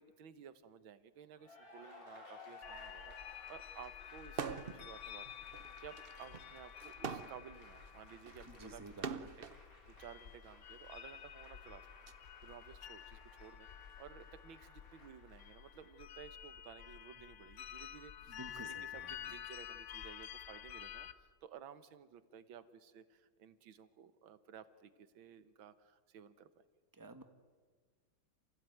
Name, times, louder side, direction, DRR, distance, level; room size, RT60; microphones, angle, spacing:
voice 1, 0.0-5.3 5.5-11.9 12.1-18.3 18.6-26.6, right 8 dB, 75° right, 13 dB, 1.9 m, -55 dB
Cheering / Applause, 1.3-16.3, left 2 dB, 40° left, 3.9 m, -59 dB
sound 1, 2.6-21.1, left 10 dB, 55° left, 0.8 m, -51 dB
sound 2, 4.3-4.8 5.2-9.6 10.5-12.1, right 6 dB, 50° right, 0.6 m, -44 dB
voice 2, 8.4-9.3 18.3-19.3 26.9-27.2, right 3 dB, 10° right, 8 dB, 1.1 m, -52 dB
27.5 x 15.5 x 9.3 m, 1.5 s
omnidirectional pair, 2.2 m